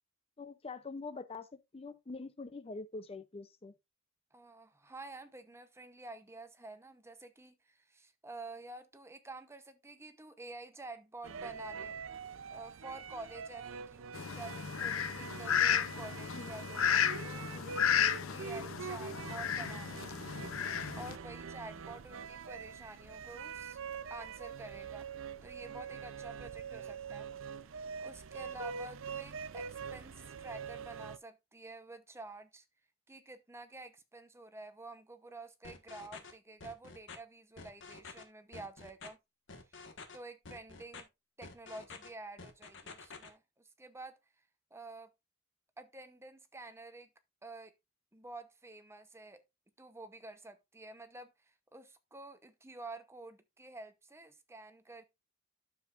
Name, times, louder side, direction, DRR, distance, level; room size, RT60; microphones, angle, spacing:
voice 1, 0.4-1.5 1.7-3.7 16.3-16.5, left 3 dB, 30° left, 0.6 m, -44 dB
voice 2, 4.3-12.0 12.5-20.0 21.0-23.8 24.1-25.1 25.4-27.3 27.5-27.6 28.0-32.6 33.1-39.2 39.7-39.8 40.1-41.1 41.4-44.2 44.7-45.1 45.8-47.1 47.4-47.8 48.1-49.4 49.8-55.0, right 2 dB, 15° right, 0.8 m, -49 dB
sound 1, 11.2-31.2, right 6 dB, 70° right, 0.5 m, -45 dB
Fowl, 14.1-21.1, left 8 dB, 80° left, 0.6 m, -33 dB
sound 2, 35.6-36.3 36.6-37.2 37.6-38.2 38.5-39.1 39.5-40.2 40.5-41.0 41.4-42.1 42.4-43.3, left 4 dB, 65° left, 1.5 m, -49 dB
10.5 x 7.1 x 2.5 m
head